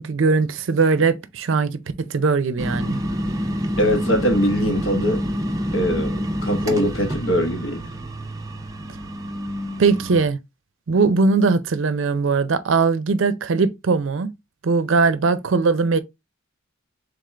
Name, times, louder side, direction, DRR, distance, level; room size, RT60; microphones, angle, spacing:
voice 1, 0.0-3.0 9.8-10.4 10.9-14.3 14.6-16.0, right 4 dB, 70° right, 0.5 m, -20 dB
sound 1, 2.6-10.2, equal, 15° right, 0.5 m, -27 dB
voice 2, 3.8-5.2 5.7-7.8, equal, 70° left, 1.1 m, -22 dB
3.6 x 3.5 x 3.3 m
head